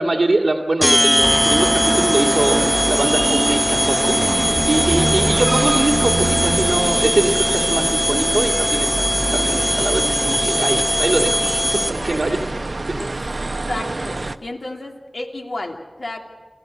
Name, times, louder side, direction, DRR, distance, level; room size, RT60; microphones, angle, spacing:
voice 1, 0.0-9.0 9.3-12.4, right 2 dB, 85° right, -3 dB, 2.0 m, -22 dB
sound 1, 0.8-12.2, left 1 dB, 15° left, 0.8 m, -20 dB
sound 2, 1.2-14.4, right 2 dB, 60° right, 0.8 m, -25 dB
voice 2, 4.7-5.2 12.0-12.6 12.9-13.1 13.7-16.2, left 2 dB, 80° left, 1 dB, 2.9 m, -32 dB
28.5 x 16.0 x 7.9 m, 1.4 s
wide cardioid pair, 60°, 0 cm